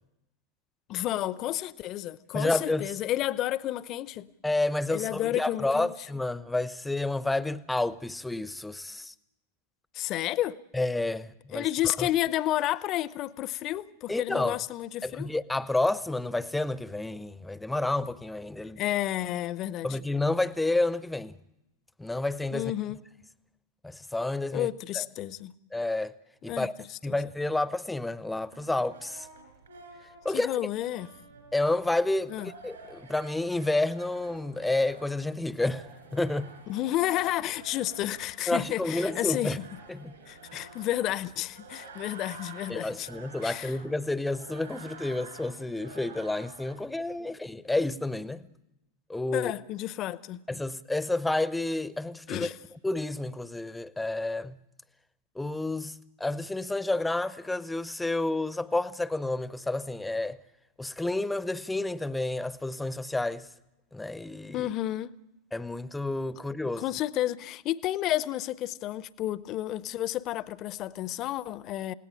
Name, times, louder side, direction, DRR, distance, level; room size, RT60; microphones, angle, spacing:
voice 1, 0.9-4.3 4.9-5.9 9.9-10.6 11.5-15.3 18.6-20.0 22.5-23.0 24.5-25.5 26.5-27.2 30.3-31.1 32.3-32.5 36.7-39.7 40.3-43.1 43.4-43.8 47.2-47.3 49.3-50.4 52.3-52.6 64.5-65.2 66.8-71.9, left 14 dB, 35° left, 0.8 m, -31 dB
voice 2, 2.3-2.9 4.4-9.1 10.7-12.1 14.1-14.6 15.0-18.8 19.8-21.4 22.0-22.7 23.8-24.7 25.0-25.1 25.7-26.1 26.4-26.7 27.0-29.3 30.2-30.5 31.5-36.5 38.5-39.6 39.9-40.1 42.7-48.4 49.1-49.5 50.5-52.5 52.8-54.6 55.4-60.4 60.8-63.5 63.9-64.7 65.5-66.8, left 2 dB, 5° left, 0.8 m, -30 dB
sound 1, 28.5-47.2, right 4 dB, 75° right, 6.3 m, -50 dB
29.0 x 17.5 x 8.8 m
figure-of-eight pair, 90°, 0 cm